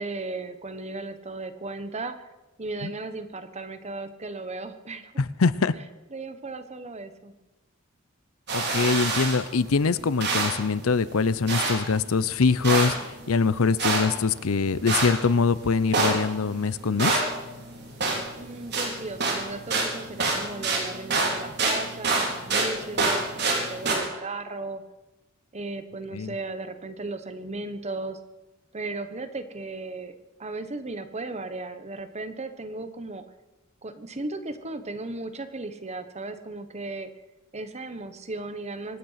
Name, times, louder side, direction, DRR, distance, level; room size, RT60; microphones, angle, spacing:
voice 1, 0.0-2.1 2.6-5.1 6.1-7.3 18.4-24.8 25.5-28.2 28.7-33.2 33.8-37.1 37.5-39.0, right 2 dB, 35° right, 9 dB, 1.3 m, -36 dB
voice 2, 5.2-5.7 8.5-13.0 13.3-17.2 26.1-26.3, left 4 dB, 90° left, 17 dB, 0.7 m, -23 dB
sound 1, 8.5-24.0, right 3 dB, 55° right, 4.5 m, -28 dB
25.0 x 9.5 x 5.8 m, 1.1 s
head